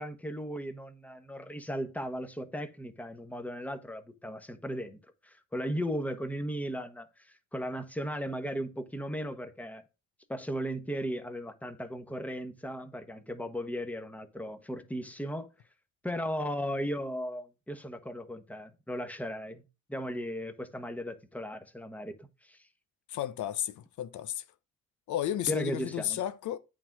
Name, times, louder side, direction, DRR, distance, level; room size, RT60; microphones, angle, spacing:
voice 1, 0.0-9.8 10.3-15.5 16.0-19.6 19.9-22.6 25.5-26.2, equal, 5° left, 1.2 m, -36 dB
voice 2, 23.1-24.4 25.1-26.6, left 12 dB, 75° left, 0.7 m, -33 dB
8.9 x 3.8 x 6.0 m
cardioid pair, 90°, 30 cm